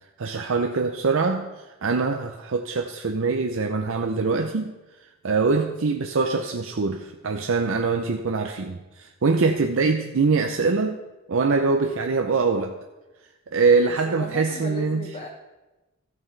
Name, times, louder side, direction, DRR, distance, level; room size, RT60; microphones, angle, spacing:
voice 1, 0.2-4.7 5.2-11.0 11.3-12.8 13.5-15.1, right 4 dB, 65° right, 5 dB, 0.6 m, -23 dB
voice 2, 13.9-15.3, left 1 dB, 30° left, 0 dB, 0.9 m, -37 dB
13.5 x 9.2 x 3.3 m, 1.1 s
head